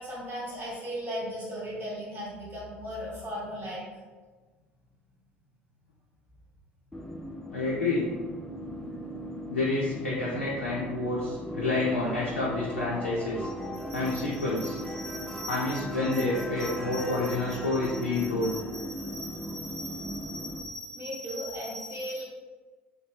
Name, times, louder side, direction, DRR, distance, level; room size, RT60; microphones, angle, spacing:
voice 1, 0.0-3.8 8.8-9.0 13.4-16.2 16.6-22.2, equal, 35° right, -6 dB, 1.5 m, -39 dB
sound 1, 6.9-20.6, equal, 10° left, 0.4 m, -38 dB
voice 2, 7.5-8.1 9.5-13.5 13.9-14.8 15.5-18.6, left 2 dB, 85° left, -5 dB, 0.4 m, -29 dB
2.6 x 2.0 x 3.2 m, 1.3 s
figure-of-eight pair, 60°, 6 cm